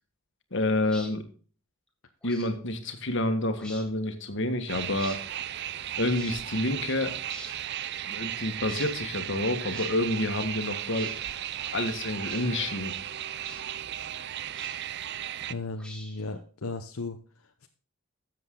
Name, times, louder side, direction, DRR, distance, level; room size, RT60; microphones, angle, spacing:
voice 1, 0.5-1.2 2.2-5.2 6.0-7.2 8.1-11.1 11.7-13.0, left 1 dB, 60° left, 7 dB, 1.7 m, -28 dB
sound 1, 0.8-1.1 2.2-2.5 3.5-3.9 5.0-5.2 6.1-6.4 7.2-7.6 8.6-8.9 9.7-9.9 10.9-11.2 12.2-12.5 13.4-13.6 14.5-14.9 15.8-16.3, left 2 dB, 5° left, 1.7 m, -46 dB
sound 2, 4.7-15.5, right 11 dB, 50° right, 0.5 m, -35 dB
voice 2, 15.5-17.7, left 3 dB, 80° left, 5 dB, 0.9 m, -36 dB
13.0 x 7.7 x 3.8 m, 0.40 s
head